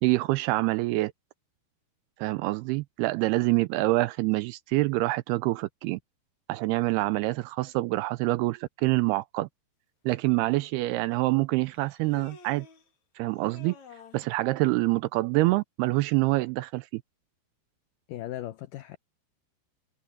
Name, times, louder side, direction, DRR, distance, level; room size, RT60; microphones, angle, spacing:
voice 1, 0.0-1.1 2.2-6.0 6.5-9.5 10.1-12.7 13.2-13.8 14.1-17.0, right 20 dB, 80° right, 2.4 m, -26 dB
Human voice, 10.3-10.4 11.7-12.9 13.4-14.4, left 5 dB, 50° left, 3.3 m, -50 dB
voice 2, 18.1-19.0, left 13 dB, 85° left, 1.9 m, -37 dB
omnidirectional pair, 4.9 m